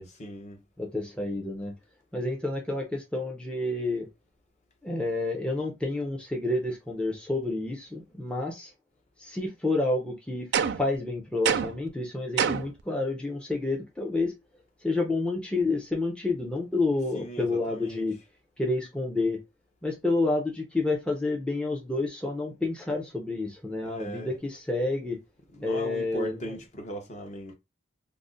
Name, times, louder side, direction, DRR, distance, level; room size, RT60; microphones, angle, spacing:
voice 1, 0.2-0.6 17.1-18.1 23.8-24.4 25.5-27.6, equal, 40° left, 0.7 m, -38 dB
voice 2, 0.8-1.7 2.1-4.1 4.8-8.7 9.2-10.5 10.8-14.3 14.8-18.1 18.6-19.4 19.8-25.2 25.6-26.5, left 2 dB, 5° left, 0.4 m, -29 dB
sound 1, 10.5-11.0 11.4-11.9 12.4-12.8, right 7 dB, 65° right, 0.3 m, -26 dB
2.4 x 2.0 x 3.7 m
head